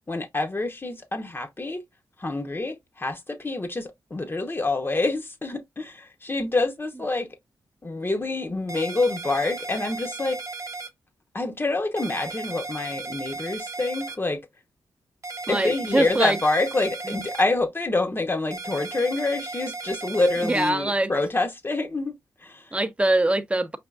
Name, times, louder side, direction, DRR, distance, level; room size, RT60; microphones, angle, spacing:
voice 1, 0.1-1.8 2.2-7.4 7.8-10.4 11.3-14.5 15.4-22.8, left 2 dB, 30° left, 0.9 m, -27 dB
sound 1, 8.7-10.9 12.0-14.2 15.2-17.4 18.5-20.7, right 3 dB, 45° right, 1.0 m, -36 dB
voice 2, 15.5-16.4 20.4-21.1 22.7-23.8, right 1 dB, 15° right, 0.7 m, -23 dB
4.9 x 3.4 x 2.3 m
cardioid pair, 55°, 8 cm